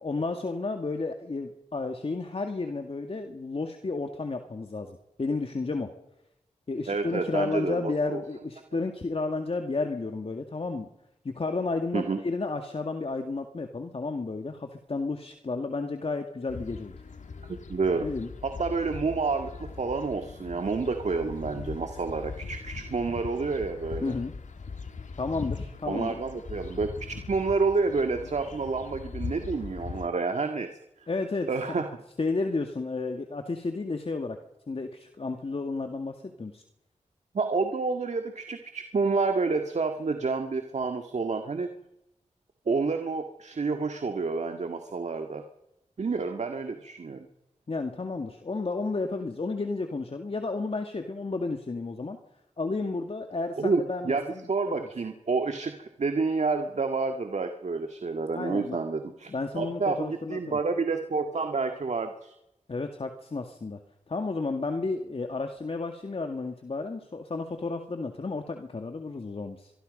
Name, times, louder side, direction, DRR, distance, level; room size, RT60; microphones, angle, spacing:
voice 1, 0.0-5.9 6.7-10.9 11.2-17.0 18.0-18.3 21.4-21.6 24.0-24.3 25.2-26.2 31.1-31.5 32.2-34.4 34.7-36.6 47.7-52.2 52.6-54.7 58.3-58.8 59.3-60.6 62.7-63.8 64.1-69.7, left 3 dB, 50° left, 5 dB, 2.1 m, -32 dB
voice 2, 6.9-8.2 11.9-12.2 17.7-18.1 18.4-24.1 25.9-30.7 31.5-31.9 37.3-41.7 42.7-45.4 46.0-47.3 53.6-62.3, right 4 dB, 65° right, 6 dB, 1.8 m, -29 dB
sound 1, 16.5-30.1, left 4 dB, 70° left, 2.0 m, -40 dB
24.0 x 24.0 x 5.3 m, 0.87 s
cardioid pair, 60°, 13 cm